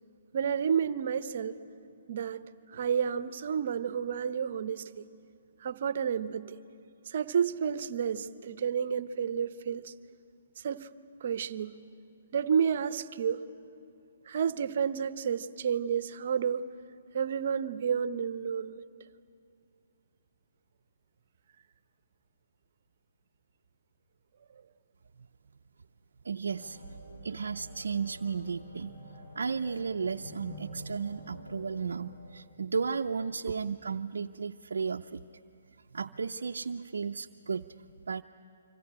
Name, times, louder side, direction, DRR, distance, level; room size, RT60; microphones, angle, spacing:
voice 1, 0.3-1.6 2.1-2.4 2.7-5.1 5.6-6.6 7.1-9.9 10.6-10.9 11.2-11.7 12.3-13.4 14.3-16.6 17.1-18.9, right 7 dB, 55° right, 14 dB, 0.9 m, -30 dB
voice 2, 26.2-26.8 27.2-29.0 29.4-35.2 35.9-37.7 38.1-38.2, right 5 dB, 75° right, 4 dB, 0.6 m, -34 dB
sound 1, 26.5-32.3, left 1 dB, 75° left, 6.9 m, -48 dB
25.5 x 25.5 x 8.8 m, 2.6 s
hypercardioid pair, 140°, 0 cm